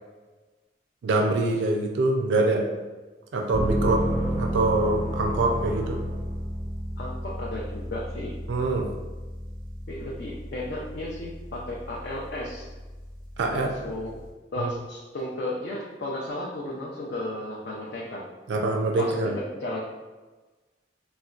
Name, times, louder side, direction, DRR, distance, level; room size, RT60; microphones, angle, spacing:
voice 1, 1.0-2.7 3.3-6.0 8.5-8.9 13.4-13.7 14.6-14.7 18.5-19.3, right 2 dB, 85° right, 2 dB, 0.4 m, -24 dB
sound 1, 3.5-14.3, equal, 25° left, 0.8 m, -33 dB
sound 2, 3.5-6.9, equal, 15° right, 0.5 m, -39 dB
voice 2, 3.8-4.4 7.0-8.3 9.9-12.6 13.5-14.2 14.5-18.3 19.0-19.3 19.6-19.8, left 1 dB, 65° left, -3 dB, 0.4 m, -34 dB
4.1 x 2.1 x 2.4 m, 1.3 s
head